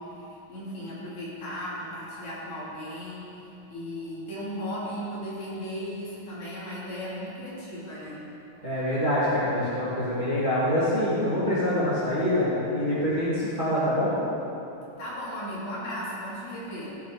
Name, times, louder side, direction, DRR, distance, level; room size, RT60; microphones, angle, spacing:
voice 1, 0.0-8.3 15.0-17.0, equal, 65° left, -8 dB, 4.2 m, -36 dB
voice 2, 8.6-14.2, left 1 dB, 20° right, -9 dB, 1.8 m, -25 dB
16.5 x 7.0 x 5.0 m, 3.0 s
omnidirectional pair, 3.9 m